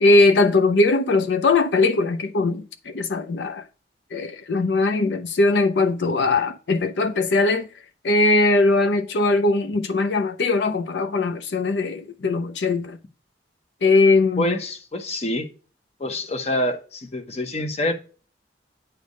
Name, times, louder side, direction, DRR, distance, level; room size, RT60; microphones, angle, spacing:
voice 1, 0.0-3.6 4.1-7.7 8.0-13.0 13.8-14.6, left 3 dB, 75° left, 0.5 m, -20 dB
voice 2, 14.4-15.5 16.0-17.9, left 1 dB, 35° left, 0.8 m, -26 dB
9.3 x 3.4 x 5.3 m
head